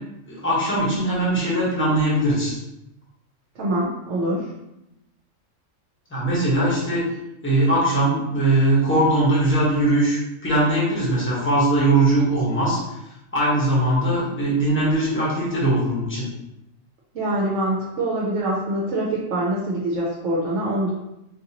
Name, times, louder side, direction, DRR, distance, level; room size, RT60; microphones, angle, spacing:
voice 1, 0.3-2.5 6.1-7.1 7.4-12.8 13.3-16.3, right 1 dB, 10° left, -7 dB, 1.1 m, -20 dB
voice 2, 3.6-4.5 17.1-20.9, right 1 dB, 65° right, -4 dB, 1.0 m, -24 dB
4.3 x 2.7 x 2.8 m, 0.87 s
omnidirectional pair, 1.4 m